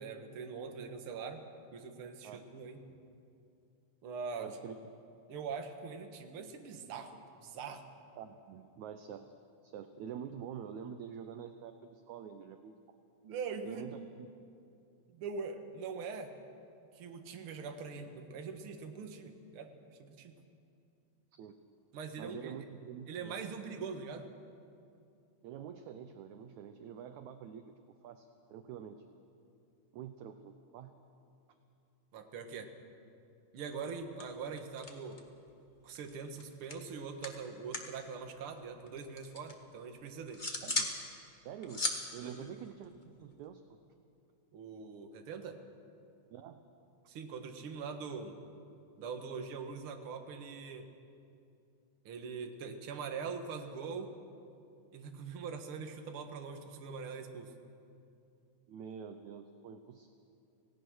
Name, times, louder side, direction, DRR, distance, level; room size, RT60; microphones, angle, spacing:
voice 1, 0.0-1.4 1.7-2.8 4.0-4.5 5.3-7.8 13.2-13.9 15.1-16.3 16.9-19.7 20.0-20.3 21.9-22.6 23.1-24.3 32.1-32.7 33.5-35.2 35.8-40.4 42.2-42.5 44.5-45.6 47.1-48.4 49.0-50.9 52.0-54.1 54.9-57.5, right 5 dB, 50° right, 5 dB, 1.8 m, -42 dB
voice 2, 4.4-4.8 8.2-9.3 9.6-12.8 13.6-14.3 21.3-21.6 22.2-23.4 25.4-27.7 28.0-29.0 29.9-31.0 40.6-40.9 41.3-41.9 42.1-43.6 46.3-46.6 58.7-60.1, right 8 dB, 75° right, 8 dB, 1.8 m, -47 dB
sound 1, 33.7-33.9 34.2-35.4 35.7-38.0 38.2-39.5 40.0-41.0 41.3-43.4, left 2 dB, 75° left, 0.4 m, -39 dB
27.0 x 17.5 x 6.3 m, 2.5 s
omnidirectional pair, 4.1 m